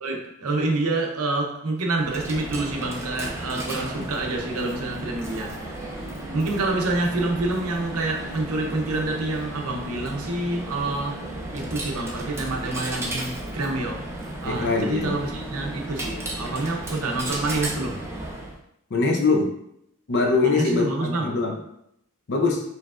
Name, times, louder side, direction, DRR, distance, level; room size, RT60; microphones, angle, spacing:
voice 1, 0.0-5.8 6.3-11.2 11.5-14.1 14.4-18.0 20.4-21.4, right 2 dB, 70° right, 2 dB, 0.7 m, -27 dB
Coin (dropping), 1.9-18.6, right 1 dB, 10° right, 0.5 m, -34 dB
voice 2, 14.4-15.1 18.9-19.5 20.1-21.5 22.3-22.6, left 3 dB, 55° left, 3 dB, 0.6 m, -22 dB
4.5 x 3.3 x 2.4 m, 0.75 s
head